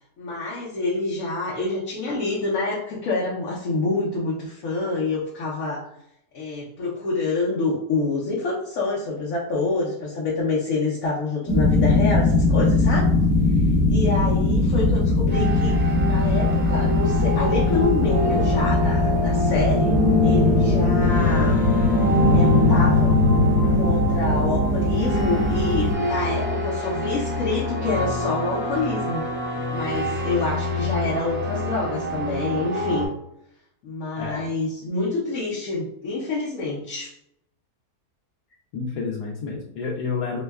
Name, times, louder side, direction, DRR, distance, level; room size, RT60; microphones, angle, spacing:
voice 1, 0.2-5.9 6.3-13.1 13.9-20.0 20.2-21.6 22.3-23.1 23.7-29.2 29.7-33.2 33.8-37.1, left 3 dB, 65° left, -5 dB, 1.0 m, -27 dB
sound 1, 11.5-25.9, left 2 dB, 35° left, 0.5 m, -20 dB
sound 2, 15.3-33.1, equal, 10° right, 0.7 m, -27 dB
voice 2, 34.2-34.5 38.7-40.4, left 5 dB, 85° left, -2 dB, 1.1 m, -29 dB
5.1 x 2.1 x 2.3 m, 0.78 s
omnidirectional pair, 1.7 m